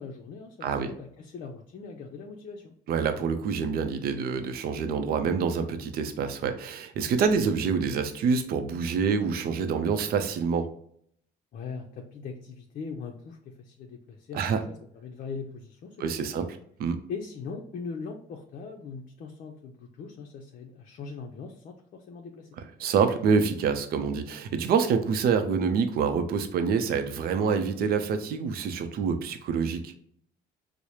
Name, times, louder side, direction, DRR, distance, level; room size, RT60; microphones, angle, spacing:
voice 1, 0.0-2.7 11.5-16.0 16.3-16.5 17.1-22.5, left 5 dB, 55° left, 2 dB, 0.6 m, -40 dB
voice 2, 2.9-10.7 14.3-14.6 16.0-16.5 16.8-17.0 22.8-29.9, right 6 dB, 65° right, 8 dB, 0.5 m, -26 dB
4.7 x 2.1 x 2.8 m, 0.64 s
cardioid pair, 110°, 17 cm